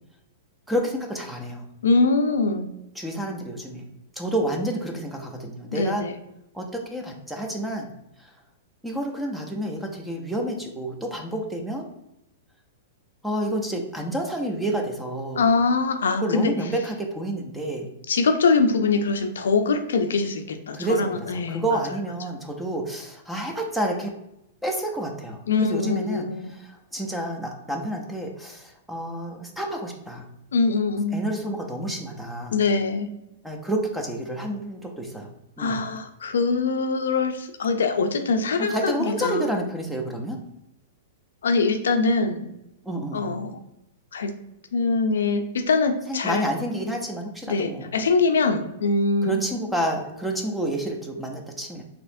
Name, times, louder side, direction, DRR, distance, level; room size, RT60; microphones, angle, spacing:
voice 1, 0.7-1.7 2.9-3.9 4.2-6.0 6.5-7.9 8.2-8.3 8.8-11.9 13.2-15.5 16.2-17.9 20.7-24.1 24.6-30.3 31.1-32.6 33.4-35.3 35.6-35.9 38.6-40.4 42.8-43.4 46.1-47.9 49.2-51.8, right 1 dB, 5° right, 1 dB, 0.6 m, -29 dB
voice 2, 1.8-2.7 5.7-6.2 15.4-16.5 18.1-21.6 25.5-26.5 30.5-31.2 32.5-33.1 35.6-38.9 39.2-39.4 41.4-42.5 43.1-43.6 44.1-44.3 44.7-46.4 47.5-49.4, left 4 dB, 90° left, 7 dB, 0.4 m, -23 dB
4.2 x 2.8 x 2.6 m, 0.85 s
hypercardioid pair, 140°, 0 cm